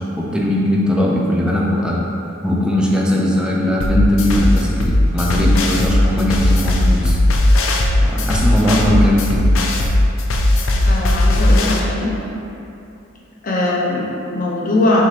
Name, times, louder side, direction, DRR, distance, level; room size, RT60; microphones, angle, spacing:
voice 1, 0.0-2.1 2.4-7.7 8.0-9.6, left 1 dB, 5° right, -3 dB, 0.4 m, -19 dB
sound 1, 3.8-11.8, left 1 dB, 75° left, 0.4 m, -16 dB
voice 2, 10.9-12.1 13.4-15.0, left 2 dB, 40° left, -5 dB, 0.7 m, -20 dB
6.1 x 2.5 x 2.8 m, 2.8 s
head